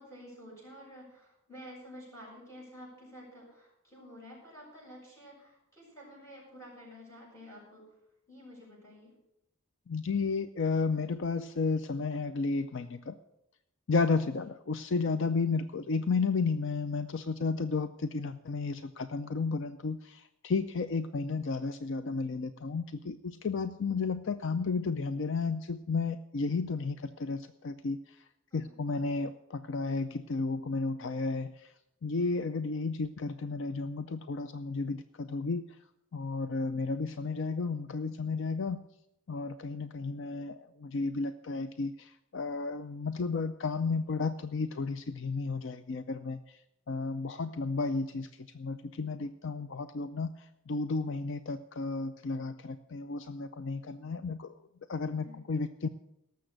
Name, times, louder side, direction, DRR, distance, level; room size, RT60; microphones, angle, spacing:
voice 1, 0.0-8.0 8.3-9.1 14.4-14.5 28.5-28.8 55.2-55.5, equal, 15° left, -5 dB, 6.9 m, -50 dB
voice 2, 9.9-13.1 13.9-28.2 28.5-31.7 32.0-35.6 36.1-38.8 39.3-46.6 46.9-48.3 48.5-54.5 54.9-55.9, left 4 dB, 55° left, 12 dB, 0.4 m, -33 dB
17.5 x 7.0 x 6.5 m, 0.84 s
head